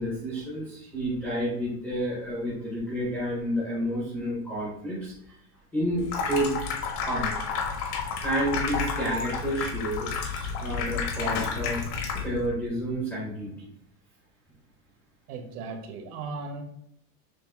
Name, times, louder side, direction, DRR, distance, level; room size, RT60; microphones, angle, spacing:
voice 1, 0.0-5.1 5.7-7.3 8.2-11.8 12.2-13.5, equal, 5° left, -7 dB, 0.4 m, -30 dB
Water tap faucet / Sink (filling or washing), 6.0-12.5, left 5 dB, 80° left, 1.2 m, -31 dB
voice 2, 15.3-16.6, right 4 dB, 80° right, 5 dB, 1.1 m, -37 dB
6.5 x 2.3 x 3.5 m, 0.74 s
supercardioid pair, 175°, 46 cm